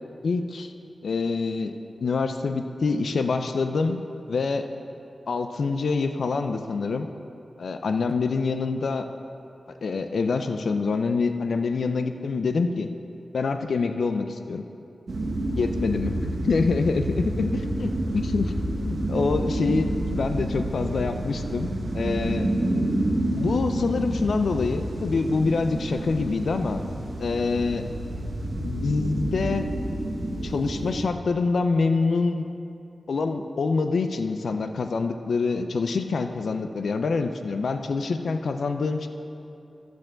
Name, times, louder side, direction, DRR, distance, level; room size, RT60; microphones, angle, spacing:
voice 1, 0.2-0.7 1.0-1.7 2.0-4.0 4.3-4.6 5.3-7.1 7.6-9.1 9.8-12.9 13.3-14.6 15.6-18.5 18.8-21.7 21.9-22.5 23.4-26.8 27.2-27.8 28.6-29.7 30.4-32.5 33.1-39.1, left 4 dB, 75° left, 7 dB, 0.4 m, -26 dB
sound 1, 15.1-31.1, right 1 dB, 55° right, 1.0 m, -29 dB
12.0 x 4.6 x 7.5 m, 2.7 s
cardioid pair, 70°, 0 cm